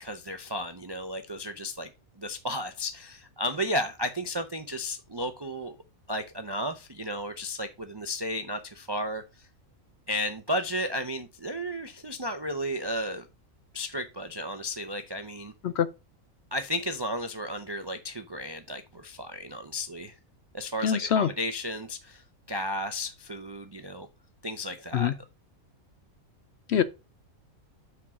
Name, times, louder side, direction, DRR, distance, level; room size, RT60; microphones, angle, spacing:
voice 1, 0.0-1.9 2.2-5.8 6.1-9.2 10.1-13.3 13.7-15.5 16.5-20.1 20.5-24.1 24.4-25.1, equal, 40° right, 0.3 m, -33 dB
voice 2, 20.8-21.3 24.9-25.1 26.7-26.8, left 9 dB, 65° left, 0.7 m, -24 dB
6.1 x 4.6 x 5.7 m
omnidirectional pair, 1.5 m